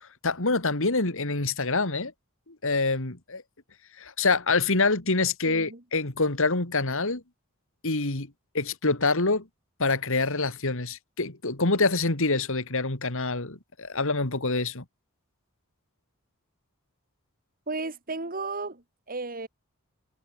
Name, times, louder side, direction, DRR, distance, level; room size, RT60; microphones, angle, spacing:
voice 1, 0.0-2.1 2.5-3.4 4.0-7.2 7.8-9.5 9.8-14.8, left 3 dB, 65° left, 2.8 m, -26 dB
voice 2, 5.5-5.8 17.7-19.5, right 3 dB, 40° right, 3.5 m, -34 dB
head